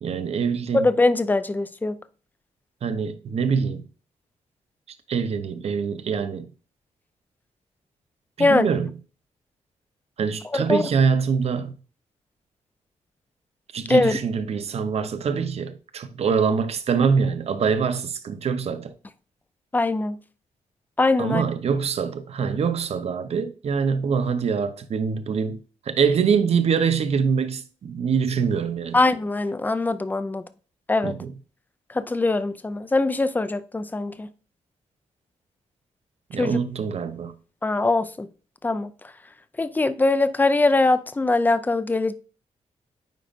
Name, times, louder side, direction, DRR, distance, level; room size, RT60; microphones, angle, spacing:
voice 1, 0.0-0.9 2.8-3.8 5.1-6.5 8.4-8.9 10.2-11.7 13.7-18.9 21.2-25.6 25.9-29.0 31.0-31.3 36.3-37.3, right 6 dB, 55° right, 0.7 m, -24 dB
voice 2, 0.8-2.0 8.4-8.7 10.5-10.8 13.9-14.2 19.7-20.2 21.0-21.4 28.9-30.4 30.9-31.1 31.9-34.3 36.4-36.6 37.6-38.3 38.6-38.9 39.6-42.1, left 2 dB, 15° left, 0.4 m, -22 dB
9.1 x 5.0 x 2.5 m
wide cardioid pair, 155°, 13 cm